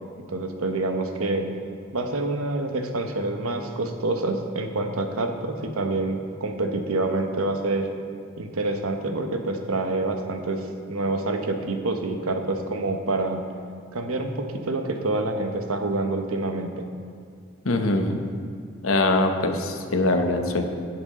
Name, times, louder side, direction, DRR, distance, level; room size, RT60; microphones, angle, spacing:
voice 1, 0.3-1.5 1.9-7.9 8.4-13.4 13.9-16.7, right 2 dB, 85° right, 5 dB, 0.9 m, -27 dB
voice 2, 17.6-18.2 18.8-20.6, left 2 dB, 75° left, 5 dB, 0.9 m, -22 dB
17.0 x 6.1 x 3.7 m, 2.1 s
head